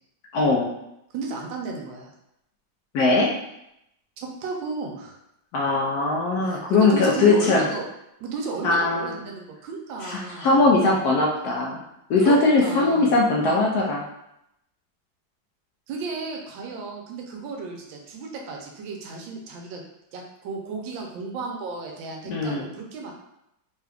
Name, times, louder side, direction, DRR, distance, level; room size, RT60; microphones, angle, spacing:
voice 1, 0.3-0.7 2.9-3.3 5.5-7.7 8.6-9.2 10.0-11.8 12.1-14.0 22.3-22.6, left 3 dB, 70° left, -2 dB, 0.9 m, -20 dB
voice 2, 1.1-2.1 4.2-5.2 6.3-7.9 8.2-10.6 12.2-13.2 15.9-19.8 20.1-23.1, right 4 dB, 85° right, 1 dB, 1.4 m, -33 dB
3.8 x 2.3 x 3.3 m, 0.82 s
omnidirectional pair, 2.1 m